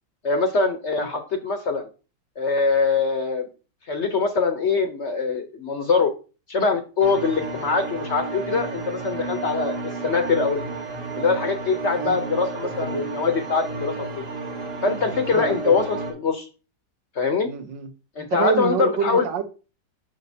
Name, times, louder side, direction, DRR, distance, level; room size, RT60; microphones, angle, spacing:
voice 1, 0.2-1.9 2.4-3.5 3.9-6.1 6.5-10.6 11.2-14.2 14.8-16.5 17.2-17.5 18.2-19.3, left 4 dB, 55° left, 0.8 m, -23 dB
sound 1, 7.0-16.1, right 4 dB, 65° right, 2.0 m, -32 dB
voice 2, 12.6-13.1 15.3-15.8 17.5-17.9 18.3-19.4, right 7 dB, 85° right, 1.6 m, -27 dB
6.7 x 6.4 x 2.7 m
omnidirectional pair, 1.9 m